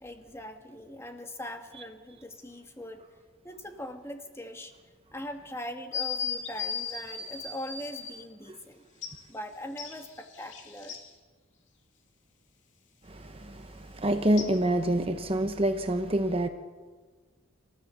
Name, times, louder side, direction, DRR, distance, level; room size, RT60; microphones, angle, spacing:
voice 1, 0.0-3.0 3.4-4.7 5.1-8.8 9.3-11.0, left 1 dB, 15° left, 1.4 m, -41 dB
sound 1, 5.9-8.1 9.0-9.1 9.8-11.0 14.4-14.5, left 6 dB, 65° left, 2.6 m, -35 dB
voice 2, 13.0-16.5, right 1 dB, 30° right, 1.0 m, -27 dB
26.5 x 14.5 x 6.9 m
head